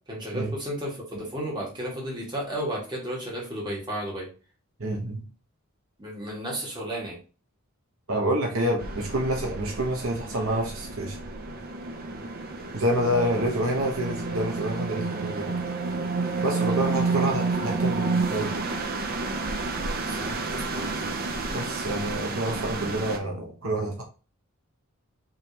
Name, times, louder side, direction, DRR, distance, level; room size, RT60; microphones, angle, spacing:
voice 1, 0.1-4.3 6.0-7.2 12.1-12.3 20.1-20.9, equal, 20° right, 1.7 m, -33 dB
voice 2, 4.8-5.2 8.1-11.2 12.7-15.5 16.4-18.5 21.5-24.0, right 1 dB, 70° right, 1.0 m, -28 dB
sound 1, 8.8-23.2, right 3 dB, 45° right, 0.6 m, -30 dB
4.9 x 3.2 x 2.8 m
head